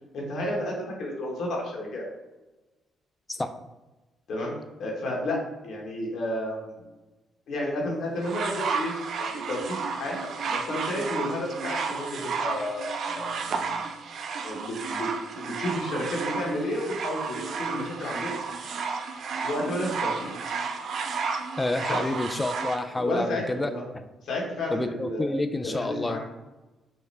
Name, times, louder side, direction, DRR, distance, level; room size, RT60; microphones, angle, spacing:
voice 1, 0.1-2.0 4.3-6.9 7.5-10.2 10.4-13.9 14.4-18.4 19.4-20.3 21.9-22.0 23.0-23.8 24.2-25.3 25.6-26.2, left 1 dB, 70° left, -2 dB, 1.2 m, -32 dB
sound 1, 8.2-22.8 23.7-23.8, right 5 dB, 60° right, 0.5 m, -32 dB
voice 2, 21.6-24.0 24.7-26.2, left 2 dB, 15° left, 9 dB, 0.4 m, -29 dB
5.5 x 2.1 x 3.3 m, 1.1 s
cardioid pair, 90°, 0 cm